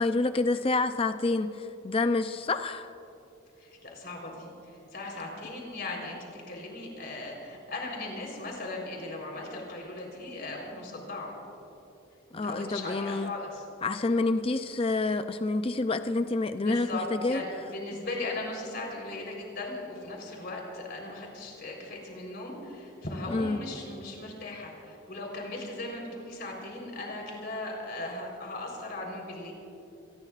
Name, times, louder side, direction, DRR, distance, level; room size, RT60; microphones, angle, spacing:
voice 1, 0.0-2.9 12.3-13.3 13.8-17.4 23.3-23.6, left 3 dB, 25° left, 10 dB, 0.4 m, -28 dB
voice 2, 3.6-11.3 12.3-13.6 16.6-29.5, left 2 dB, 50° left, 0 dB, 3.9 m, -38 dB
26.5 x 19.5 x 2.5 m, 2.8 s
head